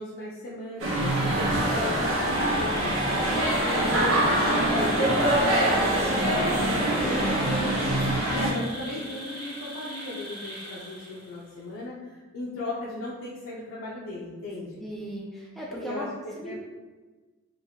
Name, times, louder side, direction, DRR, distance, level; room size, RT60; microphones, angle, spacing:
voice 1, 0.0-3.4 3.8-7.9 8.3-14.8 15.7-16.5, left 2 dB, 75° left, -5 dB, 0.4 m, -37 dB
Insect, 0.7-11.5, equal, 55° right, 1.4 m, -40 dB
sound 1, 0.8-8.5, right 1 dB, 80° right, 0.6 m, -24 dB
voice 2, 6.4-7.4 14.8-16.1 16.4-16.5, equal, ahead, -4 dB, 0.3 m, -38 dB
2.9 x 2.3 x 2.7 m, 1.3 s
head